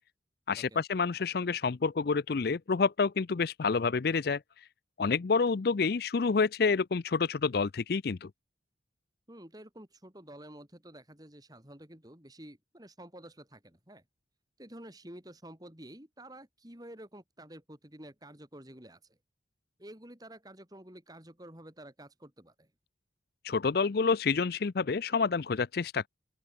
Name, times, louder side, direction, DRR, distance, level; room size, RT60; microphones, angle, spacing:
voice 1, 0.5-4.4 5.0-8.3 23.4-26.1, left 4 dB, 55° left, 0.5 m, -28 dB
voice 2, 9.3-14.0 14.6-19.2 19.8-22.7, right 1 dB, 20° right, 3.8 m, -50 dB
open air
head